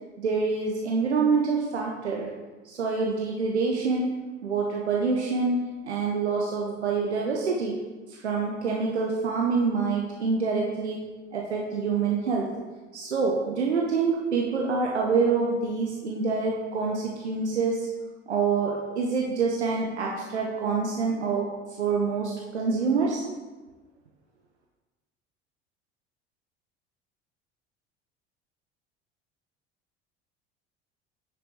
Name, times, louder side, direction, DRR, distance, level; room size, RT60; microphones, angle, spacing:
voice 1, 0.2-2.3 2.6-7.8 8.1-11.0 11.3-12.5 12.9-17.9 18.3-21.5 21.8-23.2, right 4 dB, 80° right, -1 dB, 0.9 m, -26 dB
9.2 x 6.1 x 3.2 m, 1.3 s
figure-of-eight pair, 65°, 33 cm